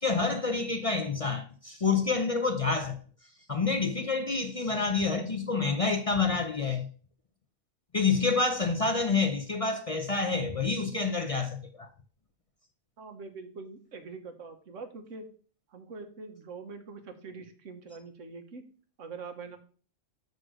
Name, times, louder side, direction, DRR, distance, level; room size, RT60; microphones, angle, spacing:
voice 1, 0.0-3.0 3.5-6.9 7.9-11.9, left 4 dB, 40° left, 0.6 m, -28 dB
voice 2, 13.0-15.3 15.7-18.6 19.0-19.6, right 4 dB, 85° right, 1.4 m, -44 dB
6.3 x 3.9 x 6.3 m
omnidirectional pair, 1.3 m